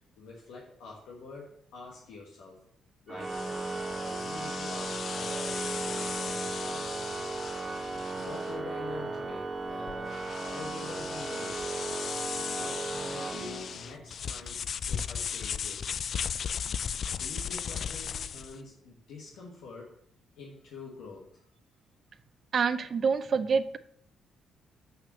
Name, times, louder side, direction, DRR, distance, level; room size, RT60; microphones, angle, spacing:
voice 1, 0.2-2.6 3.1-3.4 4.0-6.9 8.1-11.6 12.4-15.9 16.6-16.8 17.1-20.0 20.4-21.4, left 4 dB, 85° left, -3 dB, 1.7 m, -46 dB
Organ, 3.1-14.0, right 3 dB, 20° right, 0.9 m, -36 dB
sound 1, 3.2-18.6, left 7 dB, 55° left, 0.3 m, -37 dB
voice 2, 22.5-23.8, right 5 dB, 50° right, 12 dB, 0.7 m, -26 dB
6.7 x 5.9 x 6.9 m, 0.65 s
cardioid pair, 90°, 0 cm